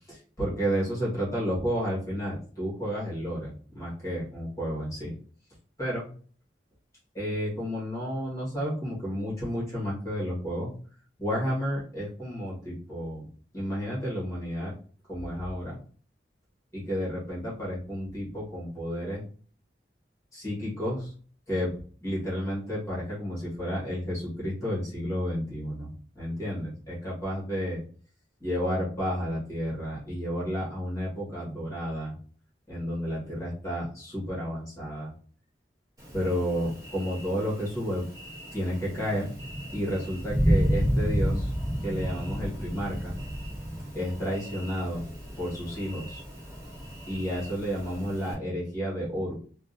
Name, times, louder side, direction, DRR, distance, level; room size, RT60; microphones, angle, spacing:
voice 1, 0.1-5.1 5.8-6.1 7.1-10.7 11.2-13.3 13.5-14.7 15.1-15.8 16.7-19.2 20.3-21.1 21.5-21.7 22.0-27.8 28.4-32.1 32.7-35.1 36.1-38.1 38.5-39.3 39.7-41.5 41.8-43.2 43.9-45.1 45.4-46.2 47.1-49.3, equal, 15° left, -7 dB, 1.5 m, -31 dB
Thunder, 36.0-48.3, equal, 20° right, 1.6 m, -32 dB
3.6 x 2.5 x 2.6 m, 0.43 s
head